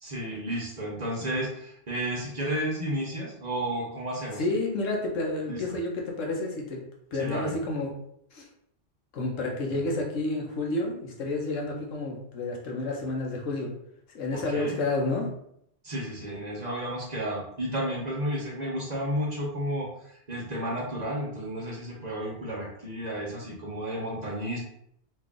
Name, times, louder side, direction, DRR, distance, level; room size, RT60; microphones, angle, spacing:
voice 1, 0.0-4.4 5.5-5.6 7.2-7.5 9.7-9.8 14.3-14.8 15.8-24.6, right 1 dB, 40° right, -3 dB, 0.8 m, -32 dB
voice 2, 4.3-6.8 7.1-7.9 8.3-8.5 9.1-13.7 14.1-15.3, left 2 dB, 85° left, -1 dB, 1.2 m, -30 dB
3.2 x 2.5 x 3.6 m, 0.73 s
omnidirectional pair, 1.3 m